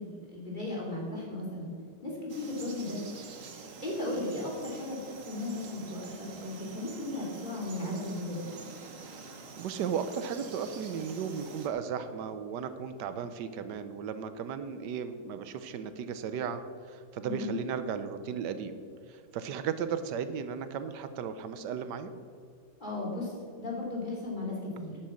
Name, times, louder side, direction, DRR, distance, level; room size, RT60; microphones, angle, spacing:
voice 1, 0.0-1.7 2.0-3.0 3.8-8.5 17.2-17.6 22.8-25.0, left 2 dB, 30° left, -4 dB, 3.4 m, -36 dB
Frog, 2.3-11.7, right 4 dB, 55° right, 1.6 m, -46 dB
voice 2, 9.2-22.1, right 7 dB, 90° right, 10 dB, 1.4 m, -35 dB
11.5 x 9.2 x 7.1 m, 2.2 s
omnidirectional pair, 1.8 m